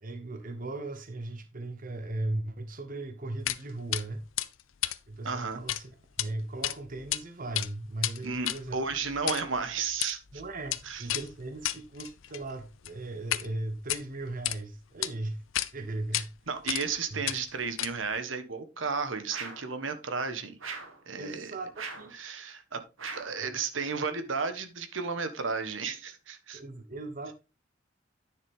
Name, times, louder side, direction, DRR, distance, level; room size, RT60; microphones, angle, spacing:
voice 1, 0.0-4.2 5.1-8.8 10.3-15.4 15.7-16.3 17.1-17.2 21.2-22.3 26.5-27.3, right 2 dB, 45° right, 1.1 m, -37 dB
sound 1, 3.5-3.6 3.9-4.0 4.4-5.8 6.1-6.3 6.6-7.2 7.5-13.5 13.8-14.6 15.0-15.1 15.5-15.7 16.1-16.3 16.7-17.0 17.2-18.2, left 13 dB, 80° left, 0.6 m, -33 dB
voice 2, 5.2-5.6 8.2-10.2 10.8-11.1 16.1-20.6 21.1-21.5 22.1-22.8 23.1-26.6, right 5 dB, 75° right, 1.3 m, -33 dB
sound 2, 19.3-19.7 20.6-21.0 21.8-22.1 23.0-23.4, right 5 dB, 90° right, 1.9 m, -40 dB
10.0 x 6.6 x 3.6 m
head